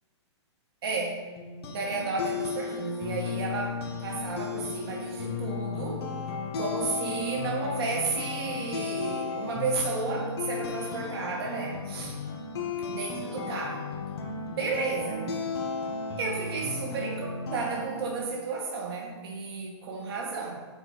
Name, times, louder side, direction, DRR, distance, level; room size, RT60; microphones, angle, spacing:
voice 1, 0.8-1.2 1.7-6.1 6.6-12.2 12.9-13.9 14.5-15.3 16.2-20.7, right 4 dB, 55° right, 0 dB, 0.5 m, -32 dB
sound 1, 1.4-18.3, left 5 dB, 60° left, 0.7 m, -35 dB
4.7 x 2.2 x 3.8 m, 1.4 s
hypercardioid pair, 165°, 15 cm